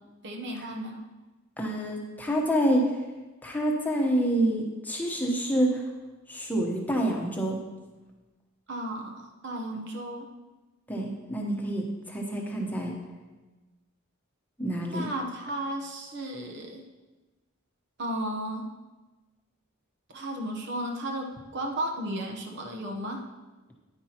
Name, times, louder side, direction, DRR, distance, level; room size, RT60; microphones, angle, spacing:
voice 1, 0.2-1.0 8.7-10.3 14.9-16.8 18.0-18.7 20.1-23.2, right 1 dB, 55° right, 1 dB, 1.0 m, -34 dB
voice 2, 1.6-2.9 3.4-5.8 6.3-7.6 10.9-12.9 14.6-15.1, right 1 dB, 10° left, -1 dB, 1.1 m, -27 dB
9.9 x 9.8 x 3.0 m, 1.2 s
head